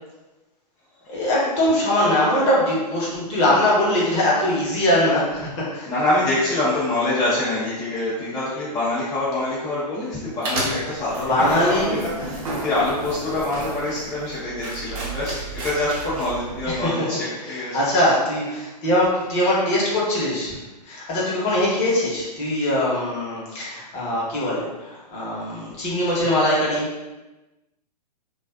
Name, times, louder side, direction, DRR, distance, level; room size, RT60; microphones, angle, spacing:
voice 1, 1.1-5.9 11.3-12.0 16.7-17.1 17.4-20.6 20.9-26.9, left 1 dB, 30° left, -6 dB, 0.9 m, -22 dB
voice 2, 5.9-17.8, left 2 dB, 15° left, -11 dB, 0.5 m, -25 dB
sound 1, 10.4-16.8, right 2 dB, 55° right, 0.7 m, -32 dB
2.4 x 2.3 x 2.3 m, 1.1 s
hypercardioid pair, 125°, 21 cm